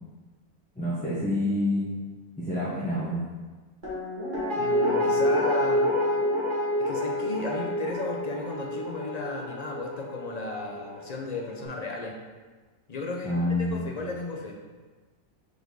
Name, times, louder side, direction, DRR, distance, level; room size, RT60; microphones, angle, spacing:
voice 1, 0.8-2.0 2.4-3.2 13.2-13.8, left 1 dB, 5° left, -10 dB, 0.9 m, -27 dB
Guitar, 3.8-10.8 11.2-11.3, left 1 dB, 35° right, 2.0 m, -28 dB
voice 2, 4.6-5.9 6.8-12.2 12.9-14.6, left 3 dB, 45° left, 0 dB, 0.5 m, -34 dB
5.1 x 4.8 x 3.9 m, 1.3 s
omnidirectional pair, 1.5 m